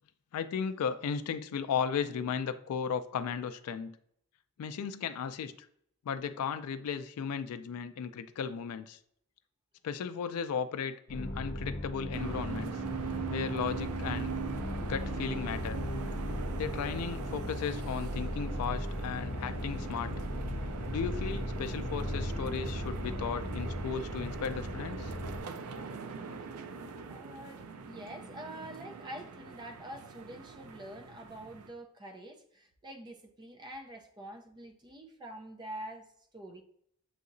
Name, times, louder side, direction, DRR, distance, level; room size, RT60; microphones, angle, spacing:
voice 1, 0.3-4.0 4.6-5.5 6.0-9.0 9.8-14.3 14.8-15.8 16.6-20.1 20.9-25.1, left 7 dB, 85° left, 0.3 m, -35 dB
sound 1, 11.1-25.4, left 1 dB, 45° left, 0.7 m, -37 dB
sound 2, 12.1-31.7, right 6 dB, 75° right, 0.4 m, -42 dB
voice 2, 27.1-36.6, right 1 dB, 20° right, 0.5 m, -46 dB
7.2 x 2.8 x 2.6 m
head